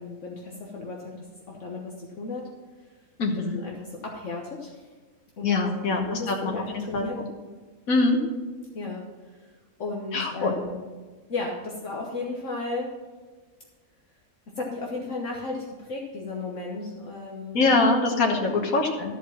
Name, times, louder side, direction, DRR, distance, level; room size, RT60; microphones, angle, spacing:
voice 1, 0.0-2.4 2.8-2.9 3.3-4.9 5.4-7.2 8.7-9.5 9.8-10.8 11.3-12.9 14.6-17.7 18.2-18.6, left 3 dB, 60° left, -1 dB, 1.5 m, -34 dB
voice 2, 3.2-3.6 5.4-6.6 6.9-7.3 7.9-8.2 10.1-10.5 17.5-19.2, left 3 dB, 85° left, 1 dB, 1.7 m, -23 dB
13.0 x 5.1 x 7.2 m, 1.4 s
omnidirectional pair, 1.4 m